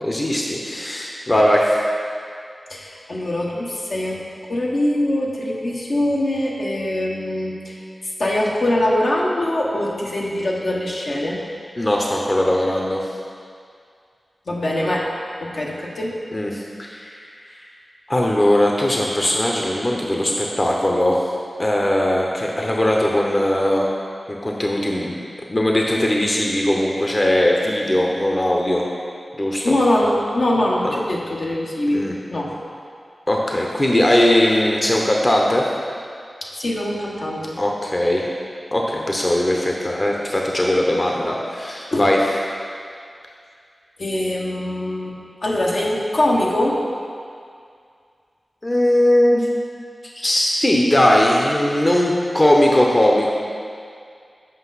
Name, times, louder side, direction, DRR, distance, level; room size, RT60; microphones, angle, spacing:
voice 1, 0.0-1.8 11.8-13.0 16.3-17.7 18.1-21.2 21.6-23.9 24.3-25.1 25.5-28.9 29.4-29.8 30.8-30.9 31.9-32.2 33.3-35.7 37.6-38.3 38.7-42.2 48.6-49.5 50.0-53.3, left 1 dB, 35° left, -1 dB, 0.8 m, -19 dB
voice 2, 2.7-4.2 4.5-11.4 14.5-15.1 15.4-16.1 29.6-32.0 32.3-32.5 36.4-37.6 41.9-42.0 44.0-45.1 45.4-46.8, left 1 dB, 70° left, -3 dB, 1.1 m, -22 dB
7.9 x 5.2 x 4.1 m, 2.2 s
cardioid pair, 50°, 0 cm